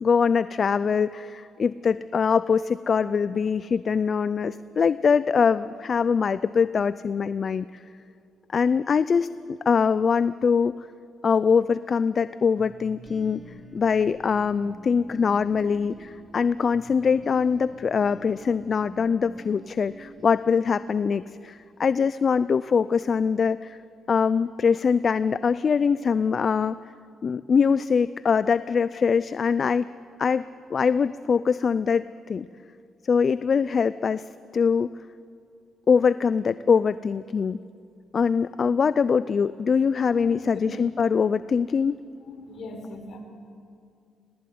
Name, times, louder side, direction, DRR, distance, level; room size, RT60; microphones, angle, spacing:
voice 1, 0.0-7.7 8.5-10.7 11.2-13.4 13.7-23.8 24.1-26.8 27.2-29.9 30.2-30.4 30.7-32.5 33.1-34.2 34.5-34.9 35.9-37.6 38.1-41.9, left 6 dB, 45° left, 16 dB, 0.4 m, -23 dB
sound 1, 12.6-21.3, right 1 dB, 15° right, 2.0 m, -47 dB
voice 2, 40.2-40.8 42.2-43.2, left 1 dB, 60° left, 3 dB, 4.5 m, -39 dB
19.0 x 19.0 x 9.5 m, 2.4 s
cardioid pair, 90°, 0 cm